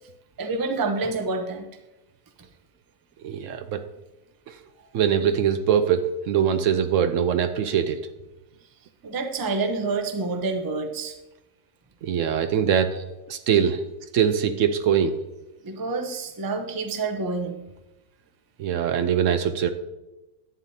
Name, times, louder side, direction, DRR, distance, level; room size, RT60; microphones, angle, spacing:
voice 1, 0.4-1.7 4.8-4.9 5.2-5.3 9.0-11.2 12.4-12.5 12.9-13.0 13.5-13.8 14.3-14.5 15.6-17.6, right 3 dB, 25° right, 5 dB, 0.5 m, -28 dB
voice 2, 3.2-3.8 4.5-4.6 4.9-8.0 12.0-12.9 13.3-13.8 14.1-15.1 18.6-19.7, right 8 dB, 70° right, 9 dB, 0.9 m, -22 dB
11.5 x 8.6 x 2.7 m, 1.0 s
omnidirectional pair, 1.5 m